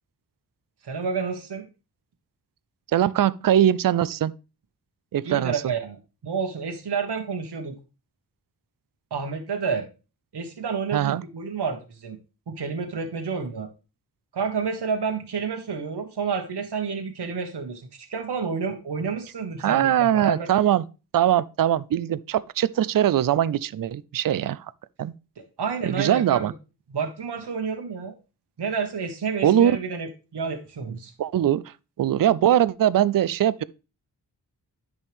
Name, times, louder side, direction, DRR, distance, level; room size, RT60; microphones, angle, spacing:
voice 1, 0.8-1.7 5.2-6.0 6.2-7.7 9.1-9.9 10.3-12.2 12.5-13.7 14.3-20.5 25.4-26.5 26.9-28.1 28.6-31.1, right 5 dB, 70° right, 1.3 m, -29 dB
voice 2, 2.9-4.3 5.1-5.6 10.9-11.2 19.6-20.8 21.1-24.7 25.0-25.1 25.8-26.5 29.4-29.8 31.2-33.6, right 11 dB, 55° right, 0.5 m, -21 dB
11.0 x 5.4 x 3.5 m
wide cardioid pair, 70°, 41 cm